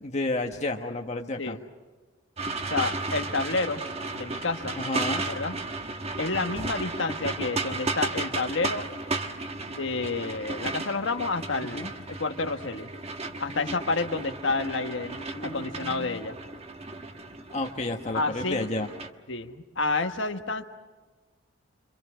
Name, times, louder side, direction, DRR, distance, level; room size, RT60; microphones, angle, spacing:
voice 1, 0.0-1.6 4.8-5.2 11.6-11.9 15.1-16.2 17.5-18.9, left 2 dB, 35° left, 3 dB, 1.2 m, -32 dB
sound 1, 2.4-19.1, right 3 dB, 30° right, 1.4 m, -34 dB
voice 2, 2.7-3.8 4.1-4.8 5.3-5.5 6.2-8.9 9.7-12.9 13.4-16.3 18.1-18.7 19.3-20.6, left 3 dB, 70° left, 5 dB, 1.4 m, -29 dB
27.0 x 25.0 x 6.3 m, 1.3 s
head